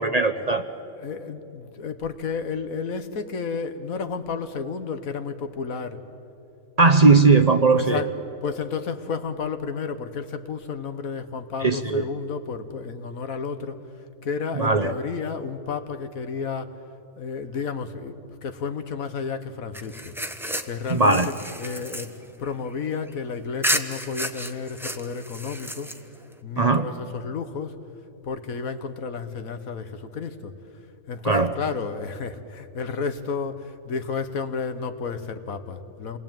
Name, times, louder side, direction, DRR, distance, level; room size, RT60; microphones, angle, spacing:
voice 1, 0.0-0.6 6.8-8.0 11.6-12.0 14.6-14.9 20.9-21.3 26.6-26.9 31.2-31.5, right 3 dB, 35° right, 7 dB, 0.8 m, -18 dB
voice 2, 0.6-6.0 7.7-8.1 8.4-13.8 14.2-16.7 17.2-20.1 20.6-25.9 26.4-27.8 28.2-30.5 31.1-36.2, left 5 dB, 85° left, 9 dB, 1.7 m, -32 dB
sound 1, 19.7-23.1 23.6-26.3, equal, ahead, 1.0 m, -32 dB
28.5 x 20.5 x 9.1 m, 2.9 s
omnidirectional pair, 1.4 m